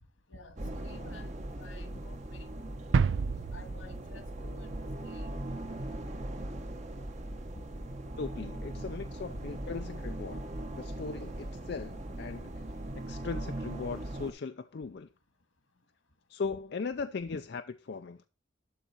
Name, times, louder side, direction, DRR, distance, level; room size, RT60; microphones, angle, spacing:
voice 1, 0.3-2.7 3.5-5.7 7.5-7.9 8.8-8.9 9.3-9.5 11.0-11.1, left 2 dB, 85° left, 1.8 m, -52 dB
sound 1, 0.6-14.3, right 1 dB, 35° right, 0.9 m, -39 dB
sound 2, 2.9-4.8 5.1-5.2, right 5 dB, 70° right, 0.4 m, -30 dB
voice 2, 8.2-10.5 10.8-12.5 12.9-15.1 16.3-18.3, left 4 dB, 55° left, 0.4 m, -38 dB
12.0 x 4.1 x 5.6 m
head